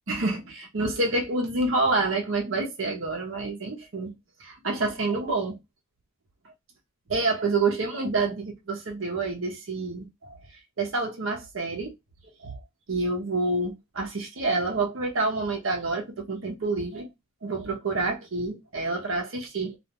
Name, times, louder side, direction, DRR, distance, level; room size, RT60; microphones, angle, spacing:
voice 1, 0.1-4.1 4.4-5.6 7.1-10.4 10.8-11.9 12.4-12.6 12.9-17.1 17.4-19.8, right 3 dB, 65° right, 0.7 m, -28 dB
2.4 x 2.2 x 2.9 m
head